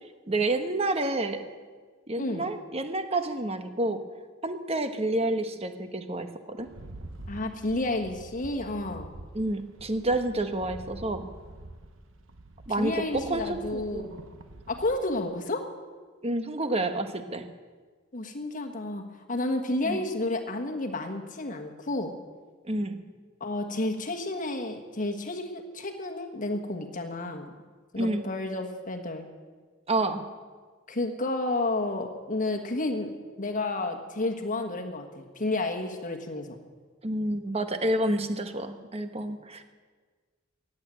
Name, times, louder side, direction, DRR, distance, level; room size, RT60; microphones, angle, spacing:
voice 1, 0.3-1.4 2.1-4.0 4.4-6.7 9.3-11.3 12.7-14.1 16.2-17.5 19.8-20.0 22.6-23.0 28.0-28.2 29.9-30.2 37.0-39.6, right 2 dB, 30° right, 8 dB, 1.1 m, -29 dB
Rattle, 6.6-15.0, right 1 dB, 75° right, 1.1 m, -46 dB
voice 2, 7.3-9.1 12.8-14.2 14.7-15.7 18.1-19.0 19.3-22.1 23.4-27.5 27.9-29.3 30.9-33.1 33.4-36.6, left 2 dB, 40° left, 4 dB, 1.4 m, -31 dB
15.0 x 9.0 x 9.1 m, 1.5 s
head